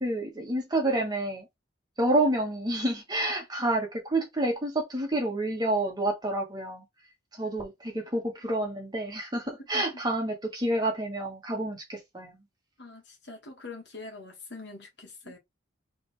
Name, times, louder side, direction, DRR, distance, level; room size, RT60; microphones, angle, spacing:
voice 1, 0.0-1.4 2.0-6.8 7.4-12.4, right 1 dB, 20° right, 1.4 m, -29 dB
voice 2, 9.6-10.0 12.8-15.4, left 3 dB, 60° left, 1.5 m, -44 dB
3.8 x 3.3 x 3.4 m
head